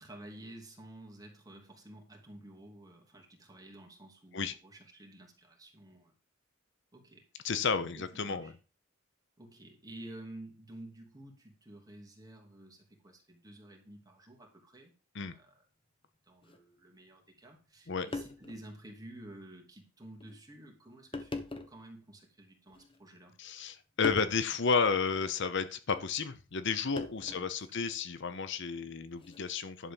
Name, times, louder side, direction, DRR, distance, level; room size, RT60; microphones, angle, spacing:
voice 1, 0.0-6.1 6.9-7.2 7.8-8.5 9.4-15.6 16.2-21.4 21.7-23.3 27.3-27.7, right 1 dB, 20° right, 1 dB, 2.7 m, -51 dB
voice 2, 7.4-8.5 15.1-15.3 17.9-18.1 23.4-29.9, left 5 dB, 60° left, 11 dB, 0.8 m, -32 dB
sound 1, 16.4-16.6 17.7-17.8 18.1-18.6 19.2-19.3 20.2-20.4 21.1-21.8 22.7-23.3 24.0-24.4 25.9-26.1 27.0-27.6 29.1-29.4, left 2 dB, 25° left, 1.3 m, -41 dB
11.0 x 4.3 x 7.0 m, 0.34 s
head